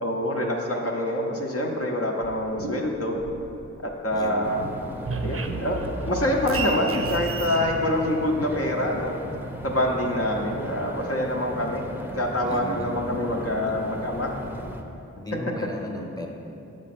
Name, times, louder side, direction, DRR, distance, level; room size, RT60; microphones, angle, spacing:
voice 1, 0.0-3.1 3.8-4.7 5.2-9.2 9.6-11.8 12.1-14.3 15.9-16.1, left 1 dB, 55° left, 0 dB, 0.8 m, -26 dB
sound 1, 2.2-3.9 4.2-7.6, right 3 dB, 50° right, 0.5 m, -33 dB
voice 2, 4.1-4.5 4.8-5.2 12.4-13.8 15.2-16.3, left 1 dB, 15° left, 1 dB, 0.9 m, -37 dB
sound 2, 4.4-14.8, equal, 5° right, 0.6 m, -37 dB
6.2 x 4.7 x 5.9 m, 2.8 s
wide cardioid pair, 65°, 29 cm